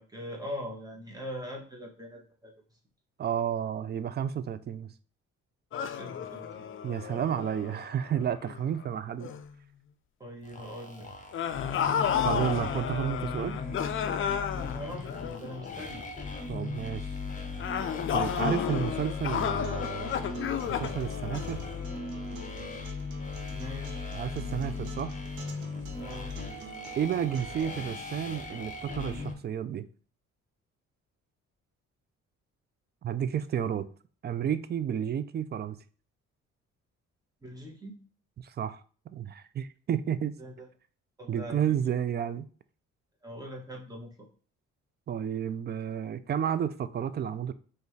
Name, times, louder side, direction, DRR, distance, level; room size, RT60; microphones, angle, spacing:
voice 1, 0.0-2.5 6.0-6.7 10.2-11.1 14.5-16.0 23.5-24.1 26.0-26.3 37.4-38.0 40.4-40.7 41.2-41.6 43.2-44.3, equal, 10° right, 1.3 m, -41 dB
voice 2, 3.2-4.9 6.8-9.3 12.2-13.6 16.5-17.1 18.1-21.6 24.1-25.2 27.0-29.9 33.0-33.9 34.2-35.8 38.4-38.8 39.1-40.3 41.3-42.5 45.1-47.5, right 9 dB, 35° right, 0.4 m, -31 dB
sound 1, 5.7-8.8 9.2-9.5 11.3-15.9 17.6-22.2, left 8 dB, 45° left, 0.4 m, -32 dB
sound 2, 10.4-29.3, left 4 dB, 25° left, 0.8 m, -38 dB
Acoustic guitar, 19.6-27.6, right 6 dB, 75° right, 0.8 m, -49 dB
5.2 x 2.5 x 3.2 m
cardioid pair, 90°, 30 cm